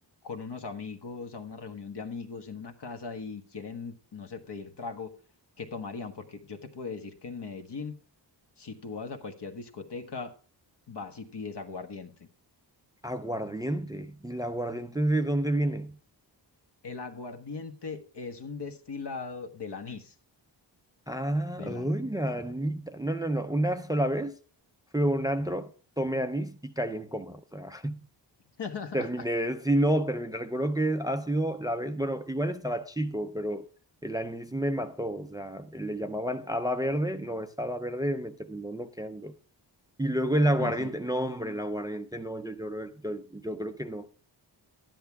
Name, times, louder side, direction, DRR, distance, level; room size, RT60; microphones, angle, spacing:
voice 1, 0.2-5.2 5.6-7.9 8.6-10.4 10.9-12.3 16.8-20.1 21.5-21.9 28.6-29.2 40.6-40.9, left 4 dB, 65° left, 1.5 m, -39 dB
voice 2, 13.0-16.0 21.1-24.3 24.9-28.0 28.9-33.7 34.0-39.3 40.0-44.1, right 1 dB, 10° right, 0.5 m, -30 dB
12.5 x 10.5 x 3.5 m
wide cardioid pair, 160°, 45 cm